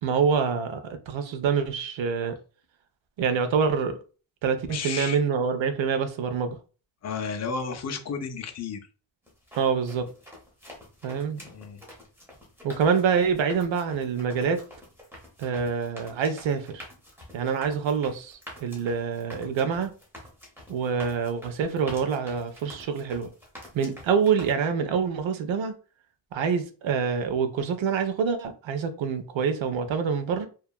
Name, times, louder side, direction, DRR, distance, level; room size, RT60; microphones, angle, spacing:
voice 1, 0.0-2.4 3.2-4.0 4.4-6.6 9.6-10.1 11.0-11.4 12.6-14.6 15.4-16.8 17.3-19.9 20.7-23.3 23.7-25.7 26.3-30.5, right 6 dB, 75° right, 0.5 m, -26 dB
voice 2, 4.7-5.2 7.0-8.8 11.4-11.8, left 5 dB, 40° left, 0.4 m, -32 dB
sound 1, 9.3-24.5, equal, 5° right, 0.7 m, -47 dB
2.7 x 2.3 x 2.2 m
wide cardioid pair, 125°, 47 cm